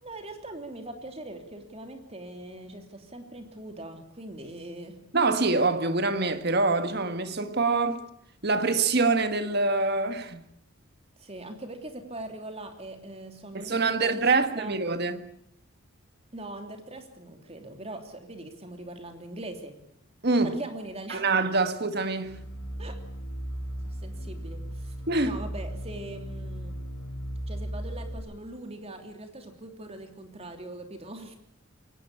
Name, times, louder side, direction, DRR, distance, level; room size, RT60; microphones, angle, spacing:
voice 1, 0.0-5.0 11.2-14.3 14.6-14.7 16.3-19.8 20.4-21.3 22.8-23.0 23.8-25.0 25.2-26.8 27.5-31.4, right 2 dB, 30° right, 3.1 m, -41 dB
voice 2, 5.1-8.0 8.4-10.5 13.5-15.3 20.2-20.5 21.1-22.4 25.1-25.4, right 3 dB, 50° right, 1.6 m, -25 dB
sound 1, 22.2-28.2, equal, 70° left, 5.2 m, -36 dB
23.0 x 18.0 x 8.7 m
head